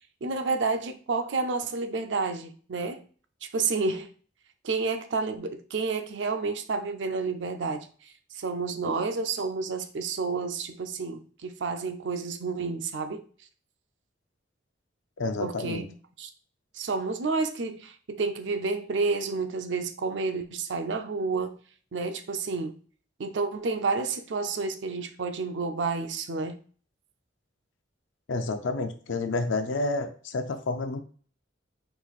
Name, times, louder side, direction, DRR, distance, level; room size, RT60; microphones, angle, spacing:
voice 1, 0.2-3.0 3.4-4.1 4.6-13.2 15.4-16.3 16.7-21.6 21.9-22.8 23.2-26.6, right 4 dB, 65° right, 0.5 m, -30 dB
voice 2, 15.2-15.8 28.3-31.0, left 3 dB, 80° left, 0.6 m, -29 dB
4.4 x 2.4 x 4.1 m
head